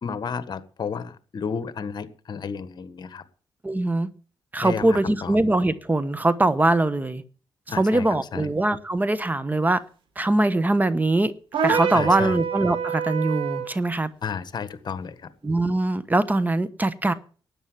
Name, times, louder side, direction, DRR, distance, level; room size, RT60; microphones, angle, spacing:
voice 1, 0.0-3.2 4.6-5.4 7.7-8.5 11.9-12.4 14.2-15.3, left 6 dB, 55° left, 1.5 m, -32 dB
voice 2, 3.6-4.1 4.5-7.2 7.8-9.8 10.2-11.3 11.6-14.1 15.4-17.1, right 2 dB, 20° right, 1.0 m, -22 dB
sound 1, 11.5-13.7, right 6 dB, 80° right, 2.8 m, -26 dB
12.5 x 9.0 x 7.4 m
cardioid pair, 85°, 9 cm